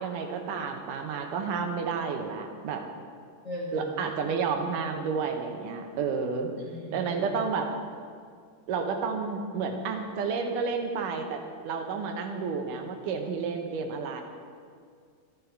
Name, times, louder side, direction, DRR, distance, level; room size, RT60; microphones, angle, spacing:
voice 1, 0.0-2.8 3.7-6.5 6.9-7.7 8.7-14.2, right 5 dB, 85° right, 4 dB, 2.6 m, -31 dB
voice 2, 3.4-4.1 6.5-7.4, left 1 dB, 70° left, -4 dB, 0.6 m, -39 dB
13.0 x 12.0 x 4.6 m, 2.1 s
omnidirectional pair, 3.7 m